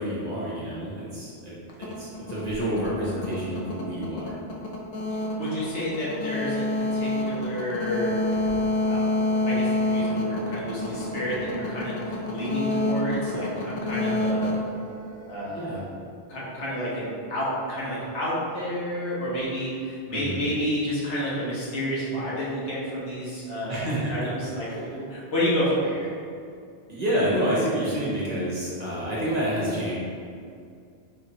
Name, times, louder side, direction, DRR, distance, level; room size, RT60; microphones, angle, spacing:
voice 1, 0.0-4.3 15.5-15.8 20.1-20.5 23.7-24.3 24.7-24.8 26.9-30.0, equal, 40° right, -7 dB, 0.8 m, -28 dB
sound 1, 1.7-15.5, left 2 dB, 50° left, 0.5 m, -28 dB
voice 2, 5.4-8.2 8.9-9.0 9.5-14.5 15.3-15.8 16.3-26.1, equal, 80° left, -7 dB, 1.3 m, -30 dB
4.1 x 3.0 x 2.8 m, 2.3 s
omnidirectional pair, 1.2 m